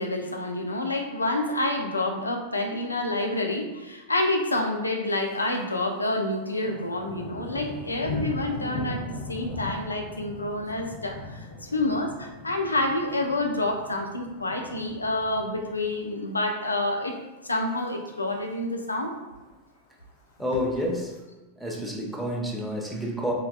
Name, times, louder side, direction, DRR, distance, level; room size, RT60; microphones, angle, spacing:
voice 1, 0.0-17.2 17.4-19.2, left 2 dB, 80° left, 2 dB, 0.3 m, -28 dB
Thunder, 5.1-5.6 5.9-16.3 16.6-17.0 17.4-17.9 18.2-18.3 18.4-18.5 18.9-19.5 20.2-21.2, left 2 dB, 45° left, 0.7 m, -39 dB
voice 2, 20.4-21.1 21.6-23.3, equal, 5° right, -2 dB, 0.5 m, -29 dB
3.5 x 2.2 x 2.3 m, 1.1 s
figure-of-eight pair, 90°, 0 cm